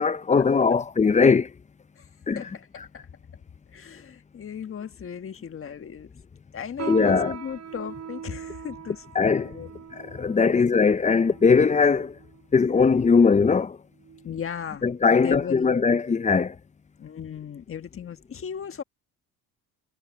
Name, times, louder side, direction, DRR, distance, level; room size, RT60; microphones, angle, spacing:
voice 1, 0.0-1.5 2.3-2.4 6.9-7.4 9.1-9.5 9.9-12.2 12.5-13.8 14.8-16.6, left 5 dB, 20° left, 0.7 m, -20 dB
voice 2, 2.3-3.1 3.7-6.1 6.5-9.7 10.4-10.6 14.2-14.8 15.1-15.8 17.0-18.8, left 8 dB, 35° left, 1.6 m, -36 dB
sound 1, 6.8-12.5 13.1-13.3 14.0-14.3 14.7-14.9 15.6-15.7, right 8 dB, 45° right, 6.9 m, -40 dB
cardioid pair, 105°, 37 cm